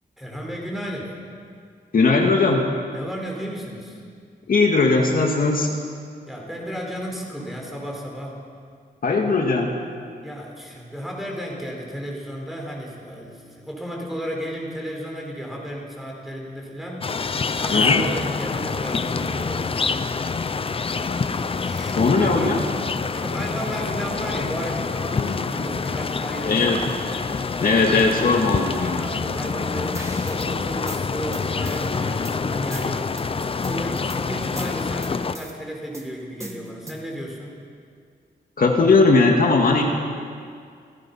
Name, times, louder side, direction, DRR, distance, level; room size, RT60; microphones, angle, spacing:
voice 1, 0.2-1.1 2.9-4.0 6.3-8.4 10.2-19.8 20.9-22.7 23.1-26.8 27.5-27.9 28.9-33.1 33.6-37.6, equal, ahead, -2 dB, 4.5 m, -34 dB
voice 2, 1.9-2.7 4.5-5.7 9.0-9.7 17.7-18.0 22.0-22.6 25.1-25.4 26.4-26.8 27.6-29.0 38.6-39.8, left 3 dB, 60° left, 1 dB, 2.1 m, -19 dB
sound 1, 17.0-35.4, left 4 dB, 35° left, 0.6 m, -26 dB
sound 2, 29.9-30.5 30.9-32.4 32.7-33.2 33.6-34.2 34.6-35.5 35.9-37.1, right 1 dB, 15° right, 1.9 m, -39 dB
28.5 x 17.5 x 5.7 m, 2.2 s
wide cardioid pair, 155°, 17 cm